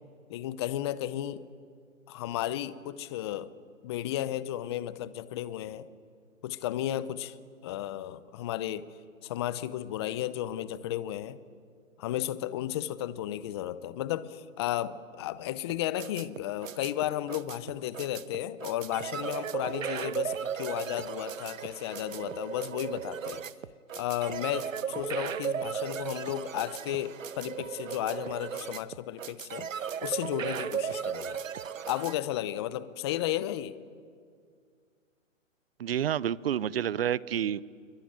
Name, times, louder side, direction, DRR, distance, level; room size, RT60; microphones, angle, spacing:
voice 1, 0.3-1.4 2.1-3.5 3.8-5.9 6.4-7.4 7.6-8.9 9.2-11.4 12.0-23.4 24.0-29.7 30.0-31.4 31.9-33.7, left 12 dB, 20° left, 16 dB, 0.6 m, -33 dB
sound 1, 15.7-32.1, right 8 dB, 75° right, 1.2 m, -36 dB
voice 2, 35.8-37.6, right 10 dB, 45° right, 21 dB, 0.8 m, -29 dB
27.0 x 23.0 x 8.9 m, 2.2 s
hypercardioid pair, 145°, 40 cm